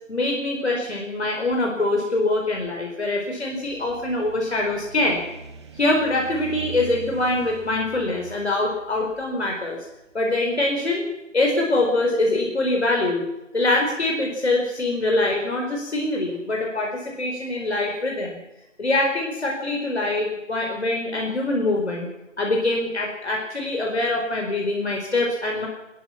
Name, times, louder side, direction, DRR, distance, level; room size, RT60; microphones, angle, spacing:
voice 1, 0.1-5.2 5.7-9.8 10.1-11.0 11.3-13.2 13.5-18.4 18.8-22.1 22.4-25.7, left 2 dB, 60° left, 0 dB, 4.9 m, -24 dB
sound 1, 3.6-10.7, right 3 dB, 20° right, 2.4 m, -42 dB
22.0 x 21.0 x 6.0 m, 0.96 s
figure-of-eight pair, 160°, 38 cm